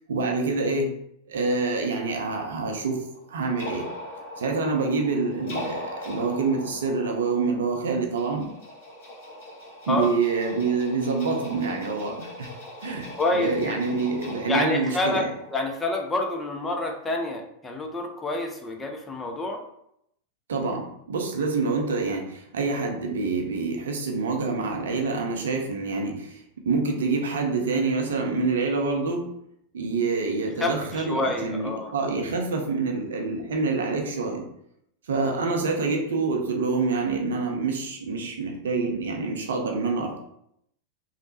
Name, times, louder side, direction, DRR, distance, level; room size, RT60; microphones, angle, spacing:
voice 1, 0.1-0.9 1.3-3.9 4.4-8.5 9.9-12.5 12.8-15.3 20.5-29.2 29.7-34.4 35.1-40.2, right 4 dB, 65° right, 1 dB, 0.5 m, -26 dB
sound 1, 2.3-16.7, left 1 dB, 50° left, 1.3 m, -41 dB
voice 2, 13.2-13.7 14.5-15.2 15.5-19.6 30.6-31.9, left 2 dB, 15° left, 2 dB, 0.4 m, -27 dB
3.1 x 2.0 x 2.7 m, 0.75 s
figure-of-eight pair, 90°, 0 cm